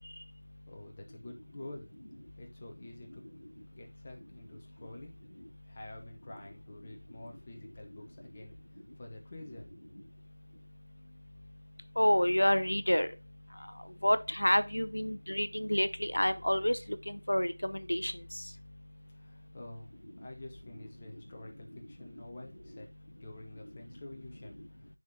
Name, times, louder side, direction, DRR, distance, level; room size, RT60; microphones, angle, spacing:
voice 1, 0.7-1.9 2.4-3.2 3.7-5.1 5.7-8.6 9.0-9.7 19.1-24.6, left 2 dB, 15° left, 0.6 m, -48 dB
voice 2, 12.0-13.1 14.0-18.5, equal, 70° left, 0.6 m, -29 dB
10.5 x 3.8 x 2.8 m
figure-of-eight pair, 175°, 0 cm